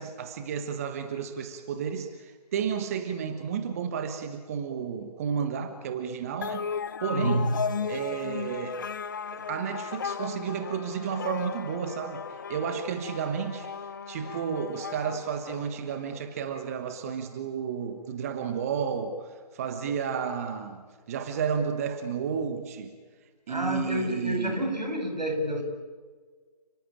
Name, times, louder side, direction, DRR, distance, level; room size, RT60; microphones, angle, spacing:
voice 1, 0.0-6.7 7.0-7.5 7.9-8.8 9.3-22.9 23.5-24.6, right 7 dB, 20° right, 8 dB, 1.3 m, -32 dB
sound 1, 6.4-16.2, left 6 dB, 30° left, 0.7 m, -36 dB
voice 2, 7.1-7.4 23.5-25.6, equal, 85° right, 5 dB, 7.2 m, -29 dB
30.0 x 19.0 x 8.9 m, 1.5 s
figure-of-eight pair, 150°, 21 cm